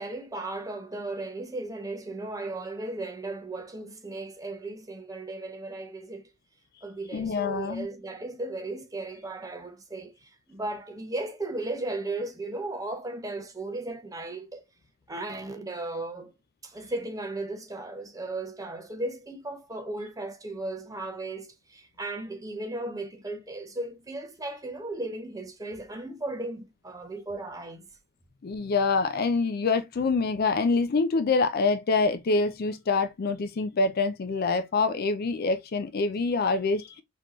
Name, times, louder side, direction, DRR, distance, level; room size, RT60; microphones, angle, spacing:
voice 1, 0.0-6.3 6.8-14.6 15.1-16.3 16.6-27.8, right 2 dB, 15° right, 0.8 m, -36 dB
voice 2, 7.1-7.9 28.4-37.0, left 4 dB, 50° left, 0.4 m, -26 dB
4.3 x 2.9 x 3.0 m
head